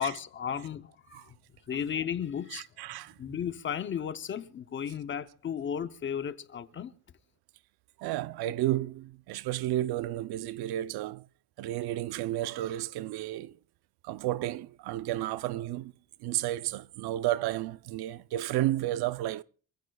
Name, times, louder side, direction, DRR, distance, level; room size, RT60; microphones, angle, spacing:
voice 1, 0.0-1.3 1.7-2.7 3.2-6.9, left 8 dB, 30° left, 0.6 m, -34 dB
voice 2, 2.5-3.1 8.0-11.2 11.6-13.6 14.0-15.9 16.2-19.4, right 14 dB, 80° right, 0.6 m, -32 dB
27.5 x 15.0 x 2.3 m
cardioid pair, 175°, 38 cm